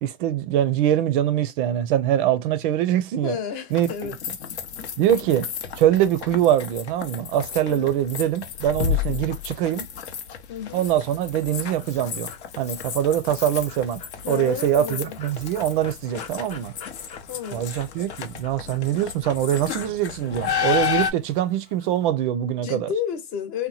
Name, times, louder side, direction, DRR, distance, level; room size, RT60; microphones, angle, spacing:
voice 1, 0.0-3.4 3.7-3.9 5.0-5.5 5.7-9.9 10.7-12.3 12.6-14.0 14.3-16.7 17.5-22.9, right 11 dB, 50° right, 0.5 m, -23 dB
voice 2, 3.2-4.2 7.6-8.0 10.5-10.9 14.2-15.2 17.3-17.7 22.6-23.7, left 8 dB, 40° left, 0.9 m, -31 dB
sound 1, 3.7-21.1, left 8 dB, 80° left, 0.8 m, -32 dB
Dog, 11.3-22.1, left 6 dB, 20° left, 0.4 m, -46 dB
2.8 x 2.2 x 2.6 m
hypercardioid pair, 130°, 33 cm